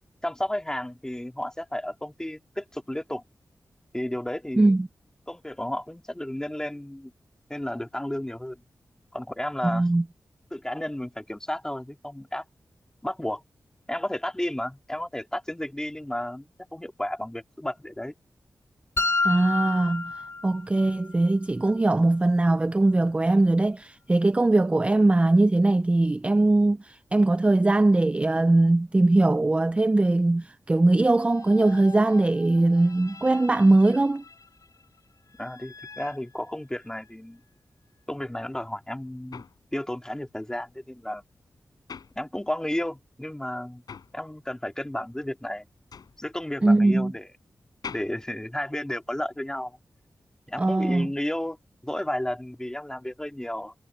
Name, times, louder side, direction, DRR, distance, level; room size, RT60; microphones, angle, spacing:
voice 1, 0.2-3.2 3.9-4.8 5.3-7.1 7.5-8.6 9.1-9.8 10.5-12.4 13.0-13.4 13.9-18.1 35.4-37.4 38.1-39.4 39.7-41.2 42.2-43.8 44.1-45.7 46.2-47.3 47.9-49.8 50.5-51.6 51.8-53.7, left 1 dB, 10° left, 2.6 m, -32 dB
voice 2, 4.6-4.9 9.6-10.0 19.2-20.1 20.4-34.2 46.6-47.1 50.6-51.1, right 2 dB, 20° right, 0.4 m, -21 dB
sound 1, 19.0-21.0, left 3 dB, 45° left, 1.1 m, -28 dB
sound 2, 31.1-37.1, left 5 dB, 60° left, 5.0 m, -48 dB
sound 3, 38.8-42.8 43.1-49.4, left 6 dB, 90° left, 6.7 m, -46 dB
wide cardioid pair, 95°, 7 cm